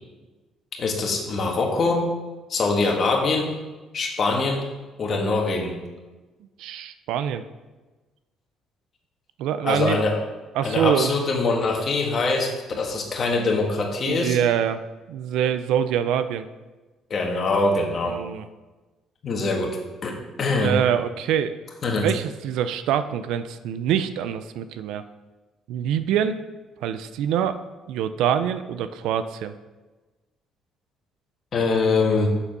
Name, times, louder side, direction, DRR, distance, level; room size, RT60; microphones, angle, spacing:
voice 1, 0.8-2.1 2.5-3.5 3.9-4.6 5.0-5.7 9.6-10.2 10.6-14.4 17.1-18.2 19.2-19.8 20.0-20.8 21.8-22.1 31.5-32.3, left 3 dB, 35° left, 0 dB, 1.4 m, -23 dB
voice 2, 6.6-7.4 9.4-10.0 10.5-11.2 14.0-14.8 15.1-16.5 18.1-18.5 20.6-21.5 22.0-25.0 25.7-26.4 26.8-27.6 27.9-29.5, right 9 dB, 85° right, 11 dB, 0.5 m, -25 dB
7.1 x 6.9 x 5.4 m, 1.2 s
cardioid pair, 155°, 0 cm